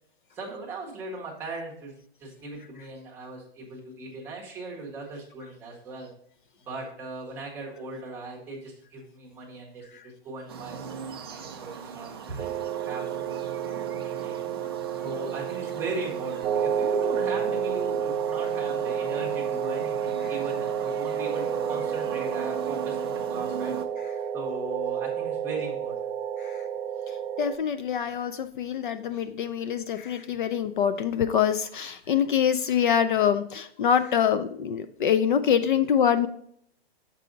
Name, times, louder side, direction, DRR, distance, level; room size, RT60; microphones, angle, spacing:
voice 1, 0.3-1.9 2.2-6.1 6.7-11.0 11.3-13.5 14.0-14.4 15.0-23.8 24.3-26.1, right 3 dB, 5° right, -3 dB, 0.7 m, -38 dB
sound 1, 10.5-23.9, right 6 dB, 25° right, 0.3 m, -40 dB
sound 2, 12.4-27.6, right 8 dB, 90° right, 0.6 m, -30 dB
voice 2, 27.4-36.3, left 8 dB, 55° left, 11 dB, 0.4 m, -25 dB
6.8 x 4.8 x 3.8 m, 0.67 s
hypercardioid pair, 170°, 31 cm